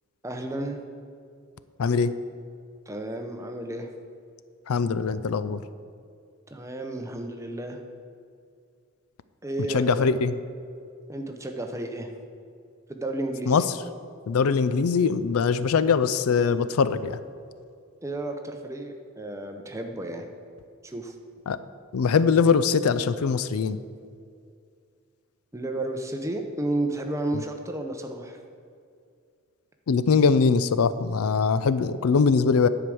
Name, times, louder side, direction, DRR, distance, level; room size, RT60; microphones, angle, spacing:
voice 1, 0.2-0.8 2.9-3.9 6.5-7.8 9.4-10.1 11.1-12.1 12.9-13.5 18.0-20.3 20.8-21.1 25.5-28.4, right 1 dB, 15° right, 4 dB, 0.7 m, -32 dB
voice 2, 1.8-2.1 4.7-5.6 9.7-10.3 13.5-13.6 14.3-17.2 21.5-21.6 21.9-23.8 29.9-32.7, left 5 dB, 80° left, 14 dB, 0.4 m, -22 dB
10.5 x 4.9 x 7.7 m, 2.3 s
head